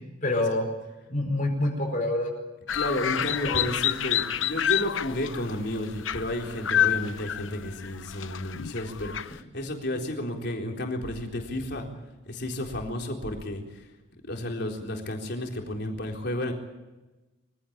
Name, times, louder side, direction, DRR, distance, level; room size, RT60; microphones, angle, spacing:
voice 1, 0.2-0.7 1.1-2.3 3.1-3.7, left 2 dB, 40° left, 1 dB, 4.8 m, -27 dB
sound 1, 2.7-9.4, left 10 dB, 80° left, 0.8 m, -29 dB
voice 2, 2.7-11.9 12.3-13.9 14.2-16.5, left 1 dB, 55° left, 1 dB, 4.0 m, -32 dB
24.0 x 16.0 x 8.8 m, 1.1 s
head